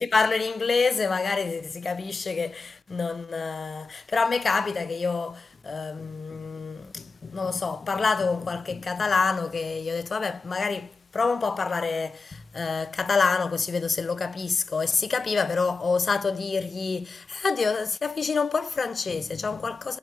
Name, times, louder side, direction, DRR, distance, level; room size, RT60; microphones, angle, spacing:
voice 1, 0.0-20.0, left 4 dB, 35° left, 0.3 m, -27 dB
4.3 x 2.8 x 2.9 m
cardioid pair, 90°, 0 cm